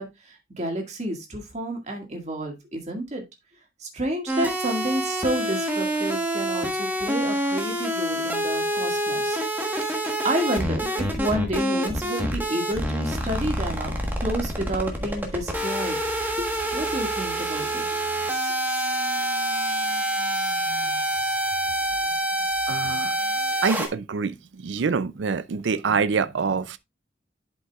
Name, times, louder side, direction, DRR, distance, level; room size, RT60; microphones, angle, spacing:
voice 1, 0.0-3.2 3.8-9.4 10.2-13.9 14.2-16.0 16.4-17.8, right 1 dB, 35° right, 2.0 m, -30 dB
sound 1, 4.3-23.9, right 1 dB, 10° right, 1.3 m, -27 dB
voice 2, 22.7-23.1 23.6-24.4 24.6-26.8, right 5 dB, 75° right, 0.5 m, -25 dB
11.0 x 5.4 x 2.4 m
head